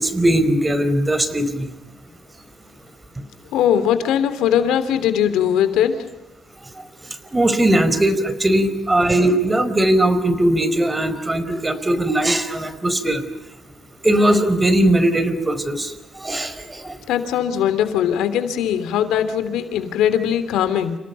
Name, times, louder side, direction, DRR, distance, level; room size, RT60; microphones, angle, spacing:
voice 1, 0.0-1.7 7.3-13.2 14.0-16.9, right 1 dB, 15° right, 11 dB, 4.6 m, -19 dB
voice 2, 3.5-6.0 17.1-21.0, left 9 dB, 90° left, 10 dB, 3.3 m, -20 dB
30.0 x 29.5 x 5.8 m, 0.94 s
cardioid pair, 90°, 0 cm